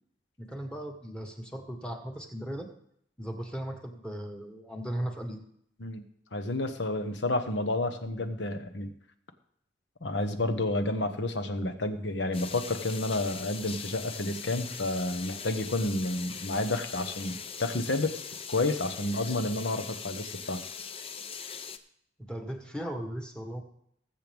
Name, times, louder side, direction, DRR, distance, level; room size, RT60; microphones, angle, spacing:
voice 1, 0.4-2.7 3.2-5.4 22.2-23.6, right 1 dB, 5° left, 3 dB, 1.4 m, -37 dB
voice 2, 6.3-8.9 10.0-18.1 18.5-20.6, left 2 dB, 70° left, 8 dB, 1.2 m, -30 dB
sound 1, 12.3-21.8, left 6 dB, 30° left, 0.6 m, -41 dB
20.0 x 7.8 x 3.5 m, 0.70 s
head